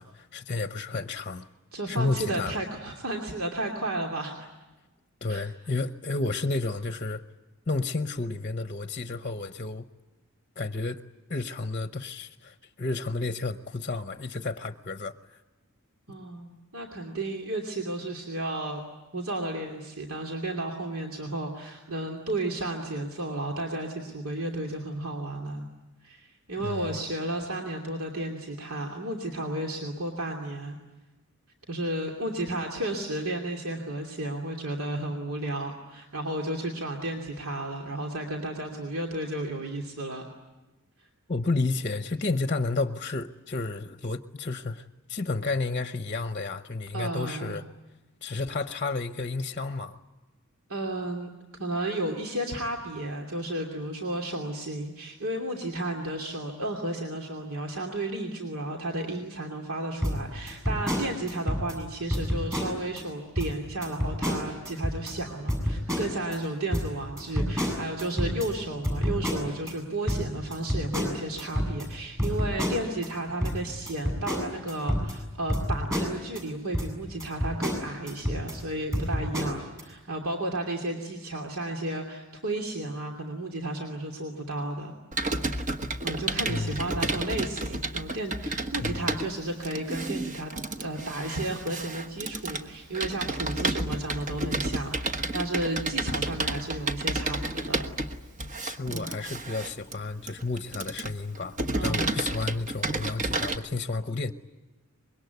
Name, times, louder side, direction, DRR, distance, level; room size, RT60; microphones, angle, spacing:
voice 1, 0.0-1.5 1.9-2.5 5.2-7.2 7.7-9.9 10.6-11.0 11.3-15.4 26.6-27.0 41.3-47.6 48.2-50.0 86.5-87.0 88.8-89.1 98.6-101.6 101.8-104.3, left 3 dB, 35° left, 0.8 m, -31 dB
voice 2, 1.7-4.5 5.3-5.4 16.1-18.8 19.1-25.7 26.0-30.8 31.7-40.3 46.9-47.6 50.7-51.3 51.6-84.9 86.0-90.5 90.8-97.9 98.9-99.1 101.7-102.2, right 1 dB, 75° right, 2.9 m, -33 dB
sound 1, 60.0-61.8 62.1-63.0 63.4-63.5 63.8-65.1 65.5-66.4 66.7-69.7 70.1-73.1 73.4-76.4 76.7-76.9 77.2-78.6 78.9-79.8, equal, 15° right, 7.5 m, -29 dB
Computer keyboard, 85.1-103.6, right 2 dB, 35° right, 1.3 m, -31 dB
25.5 x 22.0 x 9.4 m
head